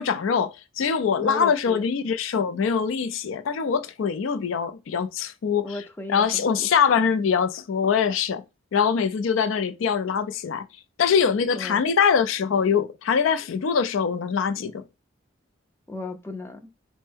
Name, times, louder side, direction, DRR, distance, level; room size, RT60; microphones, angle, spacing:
voice 1, 0.0-5.7 6.1-8.4 8.7-10.6 11.0-14.8, left 6 dB, 80° left, 0.4 m, -23 dB
voice 2, 1.2-1.9 5.6-6.7 11.5-11.9 15.9-16.7, left 2 dB, 10° left, 0.4 m, -35 dB
4.3 x 2.1 x 3.3 m
head